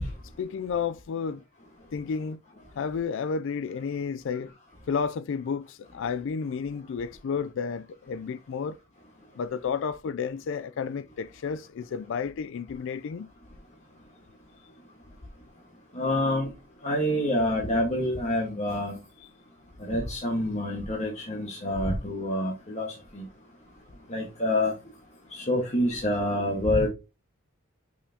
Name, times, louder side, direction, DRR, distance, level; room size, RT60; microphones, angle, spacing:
voice 1, 0.4-1.4 1.9-2.4 2.8-4.5 4.9-8.8 9.4-13.3, left 6 dB, 60° left, 0.3 m, -31 dB
voice 2, 15.9-16.5 16.8-19.0 19.8-22.9 23.1-23.3 24.1-24.7 25.3-26.9, left 1 dB, 30° left, 1.5 m, -27 dB
6.4 x 5.6 x 2.8 m
head